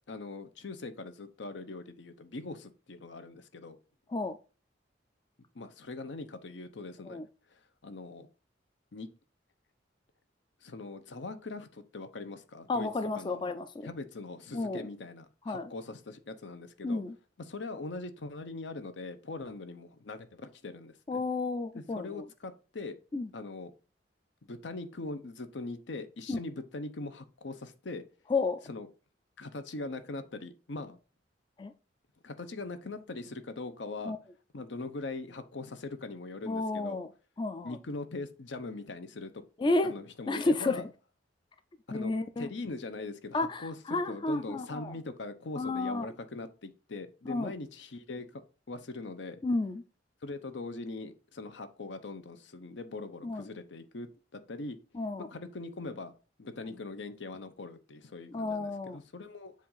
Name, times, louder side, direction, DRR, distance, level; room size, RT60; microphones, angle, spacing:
voice 1, 0.1-3.8 5.5-7.2 7.5-8.3 8.9-9.1 10.6-12.9 13.1-13.5 13.8-17.0 17.4-21.2 21.7-23.0 23.3-23.7 24.5-28.0 28.7-28.9 29.4-31.0 32.2-34.2 34.5-37.0 37.6-39.4 39.8-40.8 41.9-48.4 48.7-49.4 50.2-54.1 54.3-54.8 55.3-56.1 56.4-59.5, left 3 dB, 75° left, 10 dB, 0.7 m, -41 dB
voice 2, 12.7-13.9 14.5-14.9 15.5-15.7 16.8-17.1 21.1-22.2 23.1-23.3 26.3-26.4 28.3-28.6 31.6-31.7 34.0-34.2 36.5-37.1 37.4-37.8 39.6-39.9 40.3-40.9 41.9-42.5 43.3-44.9 45.6-46.1 47.3-47.5 49.4-49.8 53.2-53.5 54.9-55.3 58.3-59.0, left 3 dB, 25° left, 9 dB, 0.4 m, -31 dB
7.4 x 2.5 x 5.5 m, 0.35 s
head